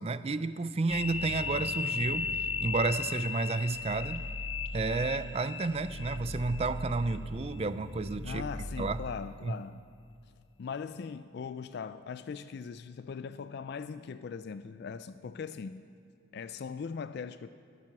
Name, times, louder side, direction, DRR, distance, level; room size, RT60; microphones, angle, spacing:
voice 1, 0.0-4.2 4.7-8.4 8.8-9.0 9.4-9.6, right 3 dB, 30° right, 13 dB, 0.4 m, -31 dB
sound 1, 0.9-9.5, left 4 dB, 80° left, 1.6 m, -37 dB
voice 2, 8.2-9.8 10.6-15.9 16.3-17.5, left 6 dB, 50° left, 13 dB, 0.3 m, -40 dB
22.0 x 7.5 x 6.0 m, 2.4 s
head